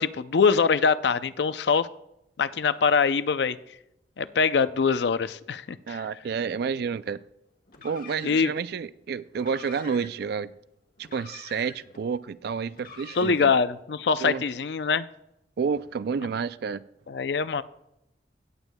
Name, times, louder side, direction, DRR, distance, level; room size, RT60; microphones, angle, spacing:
voice 1, 0.0-1.9 2.4-3.6 4.2-6.0 8.2-8.5 13.2-15.1 17.1-17.6, left 5 dB, 70° left, 14 dB, 0.5 m, -23 dB
voice 2, 5.9-7.2 7.8-10.5 11.0-13.5 14.2-14.4 15.6-16.8, right 6 dB, 65° right, 16 dB, 0.4 m, -30 dB
Car, 7.7-8.6 9.3-10.3 11.0-12.0 12.7-13.7, left 4 dB, 55° left, 1.5 m, -46 dB
17.5 x 8.0 x 2.2 m, 0.82 s
head